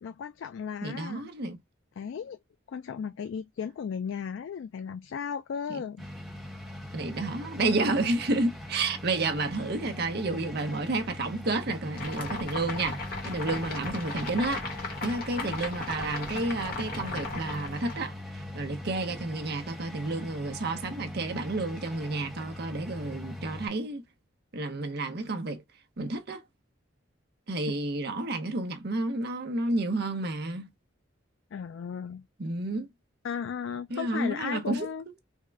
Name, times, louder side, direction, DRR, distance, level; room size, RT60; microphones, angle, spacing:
voice 1, 0.0-1.3 2.0-2.4 2.7-6.1 31.5-32.2 33.2-35.0, left 7 dB, 65° left, 0.3 m, -35 dB
voice 2, 0.8-1.6 5.7-5.8 6.9-24.0 24.5-25.6 26.0-26.4 27.5-30.7 32.4-32.9 33.9-34.9, right 2 dB, 50° right, 0.7 m, -31 dB
sound 1, 6.0-23.7, left 1 dB, ahead, 0.6 m, -41 dB
sound 2, 11.9-18.1, left 3 dB, 45° left, 1.1 m, -37 dB
3.5 x 2.1 x 3.3 m
head